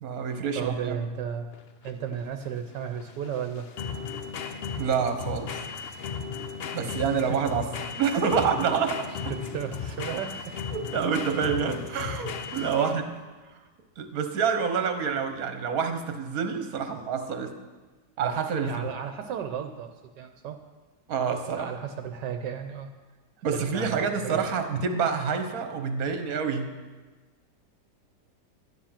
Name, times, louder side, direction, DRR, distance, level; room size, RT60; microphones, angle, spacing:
voice 1, 0.0-1.0 4.8-5.5 6.7-7.7 8.0-9.1 10.7-13.1 13.5-13.6 14.0-17.5 18.2-18.9 21.1-21.7 23.4-26.7, right 6 dB, 60° right, 7 dB, 1.5 m, -27 dB
voice 2, 0.5-1.5 1.8-3.7 6.8-7.4 9.3-10.6 11.3-11.5 12.7-13.0 18.6-19.9 20.2-20.6 21.6-22.9 23.5-24.4, right 8 dB, 80° right, 6 dB, 1.4 m, -34 dB
sound 1, 1.5-13.2, left 6 dB, 85° left, 0.5 m, -36 dB
11.5 x 10.0 x 5.9 m, 1.3 s
omnidirectional pair, 1.9 m